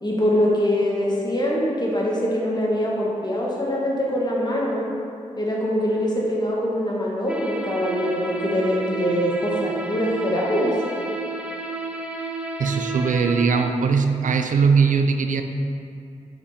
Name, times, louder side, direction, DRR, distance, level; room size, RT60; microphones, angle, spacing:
voice 1, 0.0-4.8 5.4-10.7, equal, 30° left, -4 dB, 1.4 m, -23 dB
sound 1, 7.3-13.7, right 3 dB, 10° right, 0.7 m, -31 dB
voice 2, 12.6-15.4, right 5 dB, 80° right, 7 dB, 0.4 m, -20 dB
5.1 x 5.0 x 4.1 m, 2.5 s
cardioid pair, 45°, 13 cm